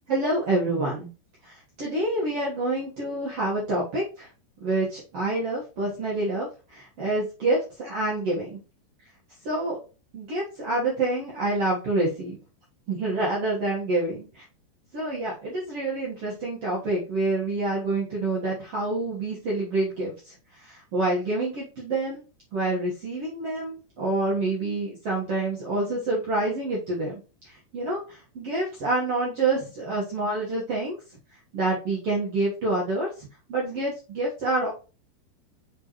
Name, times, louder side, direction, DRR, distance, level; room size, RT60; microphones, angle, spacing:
voice 1, 0.1-1.1 1.4-4.3 4.6-8.6 9.4-9.8 10.1-12.4 12.9-14.4 14.9-22.2 22.5-27.2 27.4-31.0 31.5-34.7, right 2 dB, 85° right, -5 dB, 1.3 m, -27 dB
7.5 x 4.1 x 3.0 m, 0.33 s
omnidirectional pair, 5.0 m